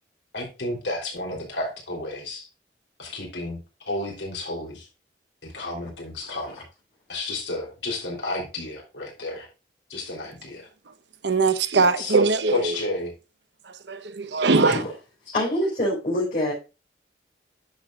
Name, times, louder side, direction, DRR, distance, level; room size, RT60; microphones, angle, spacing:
voice 1, 0.3-2.5 3.0-4.9 5.4-6.6 7.1-9.5 9.9-10.7 12.0-12.2 12.5-13.1, left 2 dB, 80° left, 3.4 m, -32 dB
voice 2, 11.2-12.7 13.9-14.8, right 3 dB, 75° right, 0.9 m, -21 dB
voice 3, 15.2-16.5, left 1 dB, 45° left, 4.3 m, -25 dB
10.5 x 6.9 x 2.4 m
head